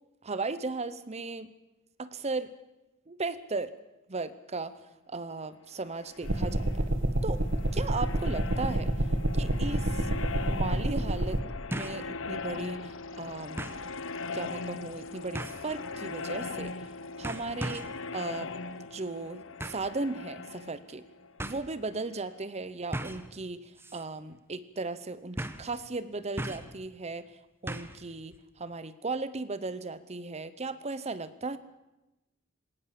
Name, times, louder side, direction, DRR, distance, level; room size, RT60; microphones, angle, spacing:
voice 1, 0.2-1.5 2.0-2.5 3.1-3.7 4.1-6.8 7.2-7.4 7.7-8.9 9.3-10.1 10.4-11.4 11.7-13.6 14.3-16.7 17.2-17.9 18.1-18.5 18.9-21.0 21.4-27.3 27.6-31.6, right 3 dB, 30° right, 14 dB, 0.8 m, -36 dB
sound 1, 5.8-22.4, left 4 dB, 65° left, 0.9 m, -40 dB
sound 2, 6.2-11.4, right 1 dB, 60° right, 1.5 m, -28 dB
sound 3, 11.7-12.0 12.5-12.6 13.6-13.8 15.3-15.7 16.6-16.9 17.2-18.0 19.6-19.9 20.9-21.0 21.4-21.6 22.9-23.3 23.8-24.0 24.3-24.4 25.4-25.7 26.4-26.8 27.7-28.0 28.3-28.4, right 1 dB, 10° right, 1.1 m, -37 dB
20.0 x 18.5 x 7.6 m, 0.98 s
head